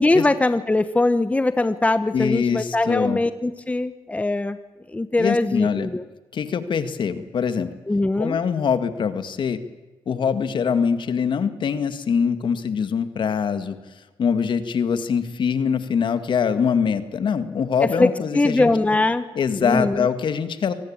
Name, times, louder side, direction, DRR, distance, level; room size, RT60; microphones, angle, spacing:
voice 1, 0.0-4.6 4.9-6.0 7.9-8.4 17.8-19.3 19.6-20.1, left 2 dB, 15° left, 12 dB, 1.0 m, -21 dB
voice 2, 2.1-3.2 5.2-5.9 6.3-7.7 8.2-9.6 10.1-13.8 14.2-18.7 19.4-20.7, left 6 dB, 60° left, 11 dB, 1.9 m, -23 dB
25.0 x 18.5 x 8.8 m, 1.2 s
cardioid pair, 90°, 9 cm